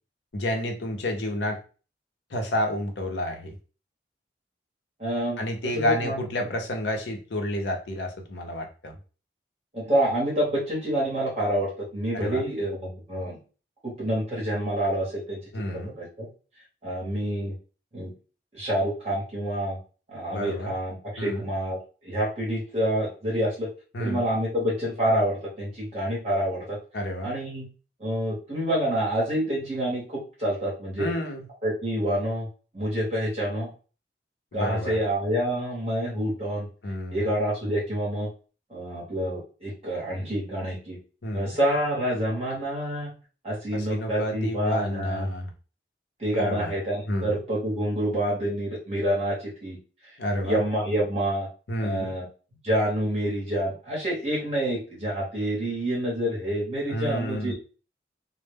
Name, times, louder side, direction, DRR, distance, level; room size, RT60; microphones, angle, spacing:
voice 1, 0.3-1.6 2.3-3.5 5.4-8.9 12.1-12.4 15.5-15.9 20.3-20.7 21.2-21.5 23.9-24.3 26.9-27.3 31.0-31.4 34.5-35.0 36.8-37.2 41.2-41.5 43.7-45.5 46.3-46.7 47.1-47.4 50.2-50.6 51.7-52.1 56.9-57.5, left 1 dB, 75° left, 3 dB, 0.6 m, -30 dB
voice 2, 5.0-6.2 9.7-13.4 13.8-15.4 16.0-16.3 16.8-17.5 17.9-18.1 18.5-19.8 20.1-21.8 22.0-23.7 24.0-26.8 27.2-27.7 28.0-31.1 31.6-32.5 32.7-33.7 34.5-36.7 37.1-38.3 38.7-41.0 41.3-43.1 43.4-45.3 46.2-49.4 49.6-49.8 50.4-51.5 51.8-52.3 52.6-57.5, right 1 dB, 35° right, -5 dB, 0.8 m, -27 dB
2.0 x 2.0 x 3.3 m, 0.36 s
head